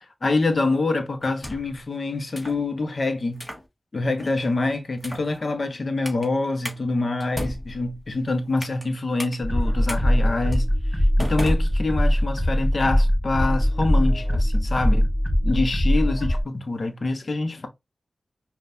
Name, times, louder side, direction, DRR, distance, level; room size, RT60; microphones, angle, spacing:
voice 1, 0.2-3.4 3.9-15.1 15.4-17.7, left 3 dB, 60° left, 0.9 m, -26 dB
sound 1, 1.2-1.8 2.3-2.6 3.3-3.7 4.2-4.5 5.0-5.3 6.0-6.3 6.6-6.8 7.2-8.9 9.2-9.4 9.9-10.0 10.5-10.7 11.2-12.3, equal, 15° left, 1.4 m, -35 dB
sound 2, 9.4-16.4, equal, 5° right, 2.7 m, -21 dB
5.2 x 2.4 x 2.6 m
cardioid pair, 45°, 0 cm